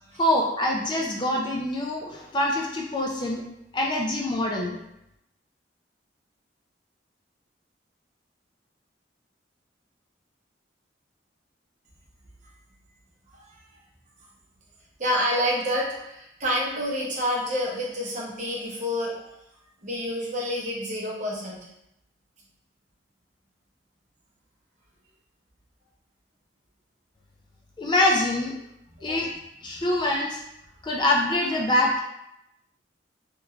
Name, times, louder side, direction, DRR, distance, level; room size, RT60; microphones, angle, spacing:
voice 1, 0.2-3.4 3.7-4.8 27.8-28.6 29.0-29.3 29.6-30.4 30.8-32.0, left 1 dB, 25° left, 0 dB, 0.3 m, -24 dB
voice 2, 15.0-19.3 19.8-21.7 29.0-29.2 29.7-29.9, equal, 40° right, -4 dB, 0.8 m, -28 dB
3.4 x 3.1 x 2.3 m, 0.84 s
head